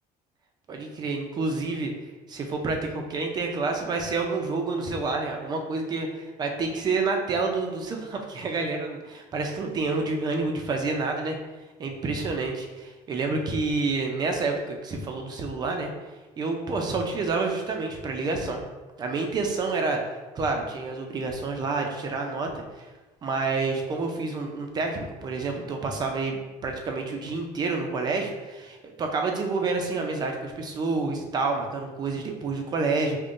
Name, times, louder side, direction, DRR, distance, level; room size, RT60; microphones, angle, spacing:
voice 1, 0.7-1.9 2.3-11.4 11.8-15.9 16.4-18.6 19.0-20.0 20.3-22.9 23.2-33.2, right 3 dB, 25° right, 3 dB, 0.4 m, -28 dB
5.2 x 2.2 x 2.5 m, 1.2 s
cardioid pair, 165°, 15 cm